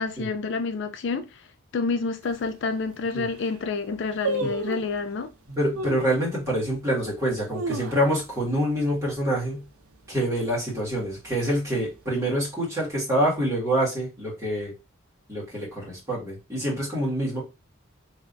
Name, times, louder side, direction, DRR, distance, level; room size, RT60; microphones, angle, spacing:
voice 1, 0.0-1.5 1.7-5.3, left 4 dB, 55° left, 0.3 m, -28 dB
sound 1, 2.2-2.3 2.9-3.0 3.2-3.6 4.2-5.0 5.7-6.1 6.7-6.8 7.3-8.4 8.7-8.8 9.1-9.5 9.9-10.3 10.9-11.7 11.9-12.0, right 2 dB, 80° right, 0.6 m, -32 dB
voice 2, 5.5-9.6 10.1-14.7 15.3-17.4, right 1 dB, 15° right, 1.8 m, -26 dB
3.2 x 3.1 x 2.6 m
head